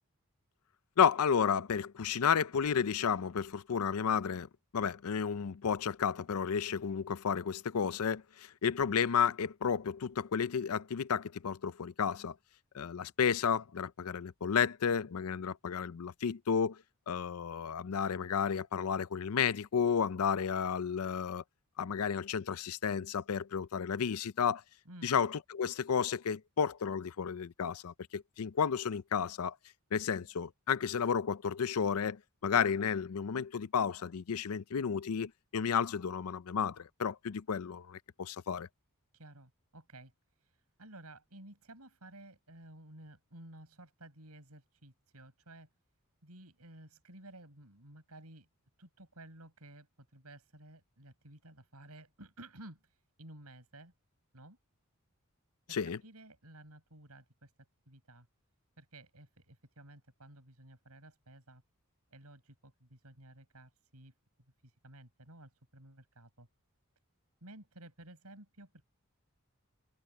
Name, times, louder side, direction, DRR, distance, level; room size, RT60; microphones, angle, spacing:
voice 1, 1.0-4.5 4.7-12.3 12.7-16.8 17.1-21.4 21.8-24.6 25.0-29.5 29.9-38.7 55.7-56.0, left 7 dB, 80° left, 0.5 m, -32 dB
voice 2, 39.1-40.1 40.4-45.7 46.2-48.5 48.8-53.9 54.3-54.6 55.7-57.5 57.9-58.3 58.8-61.6 62.1-64.1 64.6-66.5 67.4-68.9, right 1 dB, 85° right, 7.4 m, -54 dB
head